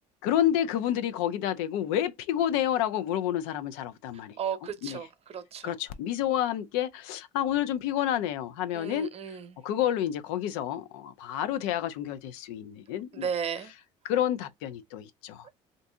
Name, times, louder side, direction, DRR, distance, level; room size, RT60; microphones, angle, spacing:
voice 1, 0.2-4.4 4.8-5.0 5.6-9.1 9.6-13.3 14.0-15.5, left 11 dB, 80° left, 0.5 m, -29 dB
voice 2, 4.4-5.7 8.7-9.6 13.1-13.7 15.4-15.5, right 7 dB, 45° right, 0.8 m, -35 dB
2.6 x 2.6 x 3.4 m
supercardioid pair, 80°, 15 cm